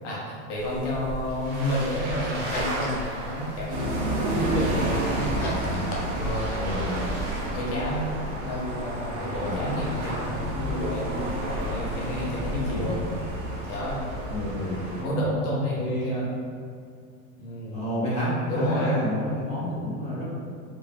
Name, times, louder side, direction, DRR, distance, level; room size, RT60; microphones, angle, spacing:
voice 1, 0.0-5.3 6.1-7.0 7.4-8.1 8.4-13.0 13.6-14.0 14.9-16.1 17.4-17.8 18.5-19.0, left 1 dB, 60° left, -6 dB, 1.2 m, -30 dB
sound 1, 0.6-14.5, right 1 dB, 25° right, 0.6 m, -36 dB
sound 2, 2.0-3.1 3.5-6.8, left 1 dB, 40° left, 0.6 m, -38 dB
sound 3, 3.7-15.0, right 1 dB, 70° right, 1.3 m, -31 dB
voice 2, 5.4-5.8 6.6-7.1 9.4-9.6 12.7-13.0 14.3-14.8 15.8-16.3 17.7-20.3, equal, 15° left, -11 dB, 1.2 m, -29 dB
4.7 x 3.6 x 2.3 m, 2.3 s
supercardioid pair, 165°, 40 cm